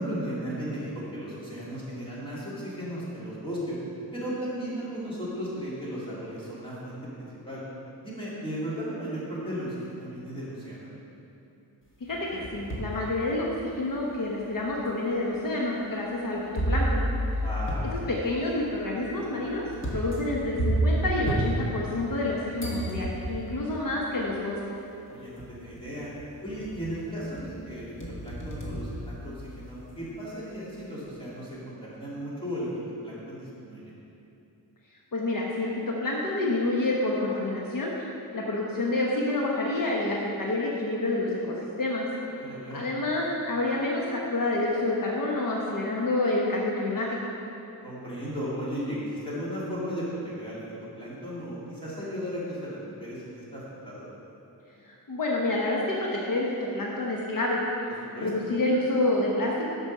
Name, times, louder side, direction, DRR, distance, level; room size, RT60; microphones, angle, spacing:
voice 1, 0.0-3.7 4.1-7.6 8.0-10.9 17.4-17.8 25.1-26.1 26.4-27.9 28.2-32.7 33.0-33.8 42.3-42.8 47.8-50.6 51.0-54.1 58.1-58.3, equal, 15° left, -8 dB, 2.6 m, -35 dB
voice 2, 12.0-17.0 18.1-24.6 35.1-37.9 38.3-42.1 42.7-47.3 54.8-57.6 57.9-59.7, left 2 dB, 60° left, -3 dB, 1.1 m, -28 dB
sound 1, 12.1-13.0 13.6-13.7 14.6-14.7 16.5-22.3 22.6-23.6 24.8-24.9 25.4-25.8 26.2-27.0 27.3-29.7, right 1 dB, 30° left, 1.5 m, -30 dB
12.5 x 5.3 x 5.4 m, 2.8 s
wide cardioid pair, 175°, 38 cm